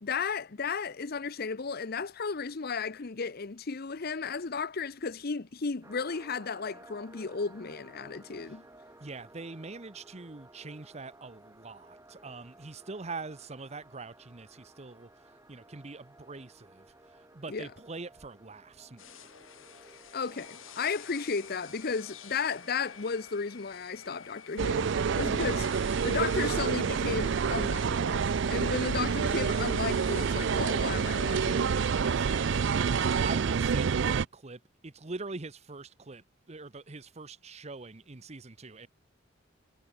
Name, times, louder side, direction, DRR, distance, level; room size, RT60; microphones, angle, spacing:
voice 1, 0.0-8.6 17.5-17.7 20.1-24.9 25.2-25.7 26.0-31.7, left 5 dB, 50° left, 0.7 m, -34 dB
sound 1, 5.8-23.4, right 1 dB, 15° right, 6.3 m, -56 dB
voice 2, 9.0-19.3 32.0-38.9, right 3 dB, 35° right, 0.9 m, -44 dB
sound 2, 19.0-33.3, left 8 dB, 80° left, 3.8 m, -50 dB
sound 3, 24.6-34.3, right 6 dB, 60° right, 0.4 m, -28 dB
head